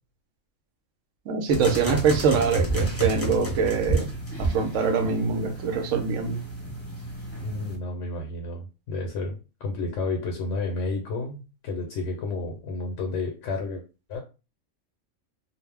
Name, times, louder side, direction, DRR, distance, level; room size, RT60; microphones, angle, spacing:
voice 1, 1.3-4.1 4.4-6.4, right 5 dB, 75° right, 1.0 m, -24 dB
sound 1, 1.5-7.8, right 2 dB, 15° left, 0.6 m, -30 dB
voice 2, 7.4-13.8 14.1-14.2, left 3 dB, 70° left, 1.0 m, -31 dB
2.5 x 2.0 x 3.4 m
omnidirectional pair, 1.4 m